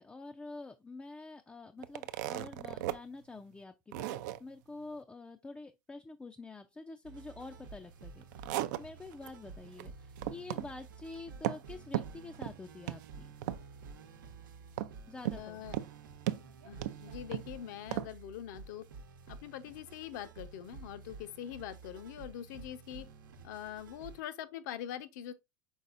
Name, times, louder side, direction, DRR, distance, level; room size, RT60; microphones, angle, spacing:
voice 1, 0.0-13.3 15.1-15.7, left 3 dB, 10° left, 0.4 m, -47 dB
sound 1, 1.8-3.0 3.4-3.5 3.9-4.4 8.0-9.3 9.6-9.9 10.2-10.7 11.0-11.7 11.9-12.6 12.9-13.1 13.4-13.9 14.8-15.4 15.7-15.9 16.3-17.5 17.9-18.1, right 14 dB, 65° right, 0.4 m, -36 dB
sound 2, 7.0-24.2, right 4 dB, 85° right, 0.9 m, -51 dB
voice 2, 15.4-15.8 16.6-18.9 19.3-23.1 23.4-25.3, left 11 dB, 65° left, 0.7 m, -43 dB
5.4 x 3.9 x 2.5 m
hypercardioid pair, 115°, 10 cm